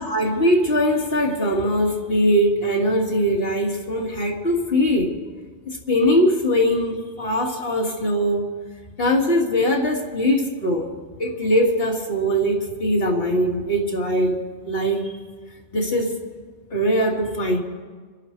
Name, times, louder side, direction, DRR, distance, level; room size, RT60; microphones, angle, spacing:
voice 1, 0.0-5.1 5.7-8.4 9.0-10.9 11.2-14.4 14.6-15.2 15.7-16.2 16.7-17.6, equal, 55° left, -1 dB, 2.6 m, -21 dB
26.5 x 11.5 x 4.7 m, 1.5 s
omnidirectional pair, 1.2 m